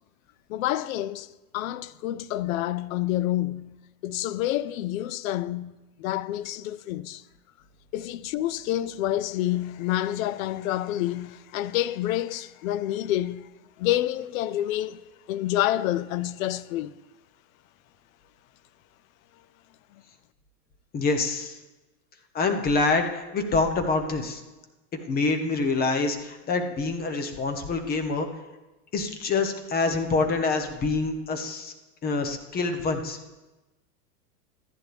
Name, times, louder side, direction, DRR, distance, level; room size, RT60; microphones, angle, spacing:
voice 1, 0.5-3.7 4.0-7.2 7.9-13.5 13.8-16.9 19.9-20.0, left 14 dB, 60° left, 0.6 m, -28 dB
voice 2, 20.9-21.6 22.3-24.4 25.1-28.3 28.9-31.7 32.0-33.2, left 3 dB, 20° left, 0.9 m, -26 dB
14.0 x 10.5 x 3.4 m
supercardioid pair, 140°, 48 cm